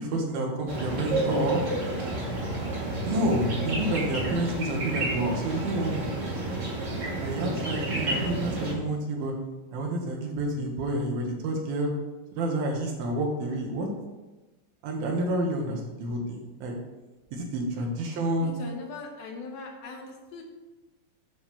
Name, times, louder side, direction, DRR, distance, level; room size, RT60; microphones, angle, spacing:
voice 1, 0.0-1.6 3.0-6.1 7.2-9.3 9.7-11.9 12.3-13.9 14.8-16.8 17.3-18.5, right 1 dB, 80° right, 1 dB, 3.2 m, -29 dB
sound 1, 0.7-8.7, right 2 dB, 35° right, 2.1 m, -30 dB
voice 2, 18.4-20.4, left 3 dB, 80° left, 1 dB, 3.1 m, -40 dB
10.5 x 3.8 x 6.7 m, 1.1 s
omnidirectional pair, 4.3 m